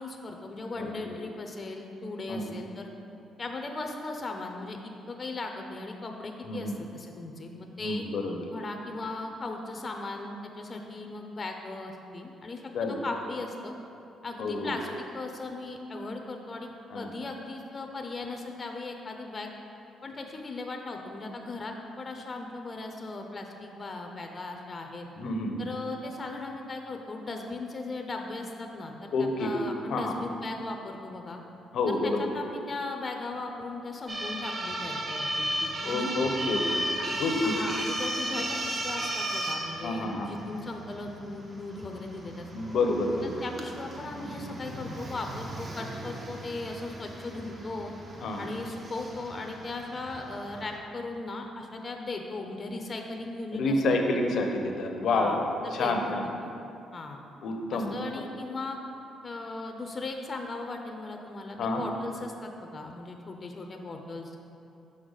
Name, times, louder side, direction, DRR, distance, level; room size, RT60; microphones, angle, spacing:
voice 1, 0.0-2.9 3.4-8.0 8.5-13.7 14.2-19.5 20.0-25.1 25.6-31.4 31.9-36.2 36.7-37.1 37.4-42.5 43.2-47.9 48.4-53.8 55.1-56.2 56.4-56.5 56.9-57.2 57.7-58.8 59.2-64.4, left 3 dB, 35° left, 3 dB, 0.6 m, -38 dB
voice 2, 0.8-1.2 2.3-2.5 6.5-6.7 7.8-8.4 12.7-13.0 14.4-14.8 16.9-17.1 25.2-25.7 29.1-29.6 29.9-30.2 31.7-32.3 35.8-36.9 37.2-37.5 39.8-40.3 42.5-43.4 48.2-48.5 53.5-55.4 55.7-56.2 57.4-57.9 61.6-61.8, left 2 dB, 70° left, 3 dB, 0.7 m, -29 dB
Fire engine Sirens, 34.1-50.8, right 1 dB, 35° right, 0.9 m, -35 dB
6.4 x 5.7 x 4.0 m, 2.7 s
cardioid pair, 90°, 0 cm